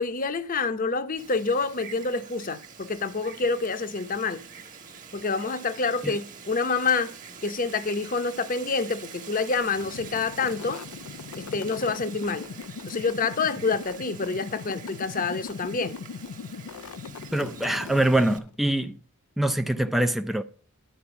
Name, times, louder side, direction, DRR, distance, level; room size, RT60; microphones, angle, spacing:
voice 1, 0.0-4.4 5.1-7.1 7.4-10.8 11.4-12.5 12.9-16.0, left 4 dB, 40° left, 0.7 m, -27 dB
Wind, 1.2-18.4, right 6 dB, 35° right, 1.3 m, -45 dB
sound 1, 9.6-18.6, left 5 dB, 85° left, 0.4 m, -40 dB
voice 2, 17.3-18.9 19.4-20.4, right 1 dB, ahead, 0.4 m, -24 dB
11.5 x 4.6 x 6.9 m
head